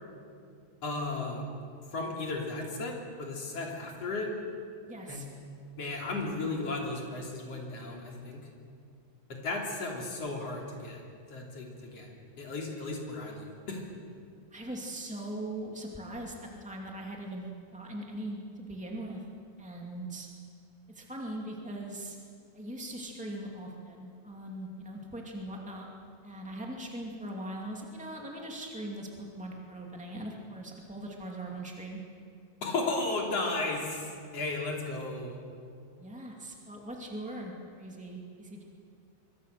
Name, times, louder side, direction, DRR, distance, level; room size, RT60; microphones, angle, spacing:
voice 1, 0.8-1.4 1.9-4.3 5.1-5.3 5.8-8.4 9.4-11.0 11.3-12.1 12.4-13.8 32.6-35.4, left 2 dB, 35° left, 0 dB, 3.5 m, -34 dB
voice 2, 4.9-5.3 14.5-19.2 19.6-20.3 20.9-22.2 22.5-25.9 26.2-32.0 36.0-38.6, right 1 dB, 10° right, -1 dB, 0.3 m, -40 dB
25.5 x 23.5 x 6.8 m, 2.3 s
omnidirectional pair, 5.5 m